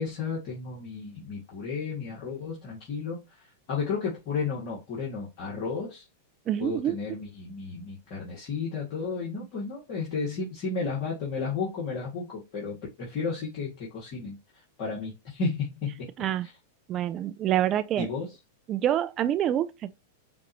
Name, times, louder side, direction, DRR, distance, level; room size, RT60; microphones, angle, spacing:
voice 1, 0.0-6.0 6.6-14.4 14.8-16.1 16.4-16.5 18.0-18.3, left 4 dB, 55° left, 1.9 m, -33 dB
voice 2, 6.5-7.0 16.2-16.5 16.9-18.1 18.7-19.9, right 11 dB, 35° right, 0.5 m, -26 dB
5.3 x 2.6 x 2.9 m
hypercardioid pair, 110°, 0 cm